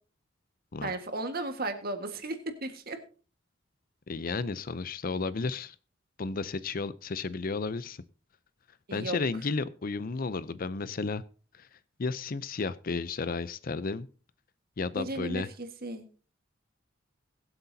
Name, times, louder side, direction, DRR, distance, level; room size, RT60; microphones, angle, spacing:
voice 1, 0.8-3.0 8.9-9.2 15.0-16.0, right 2 dB, 50° right, 6 dB, 1.7 m, -35 dB
voice 2, 4.1-5.7 6.2-8.0 8.9-11.2 11.5-11.7 12.0-14.1 14.8-15.5, left 4 dB, 45° left, 17 dB, 0.6 m, -33 dB
22.0 x 7.9 x 2.8 m, 0.37 s
head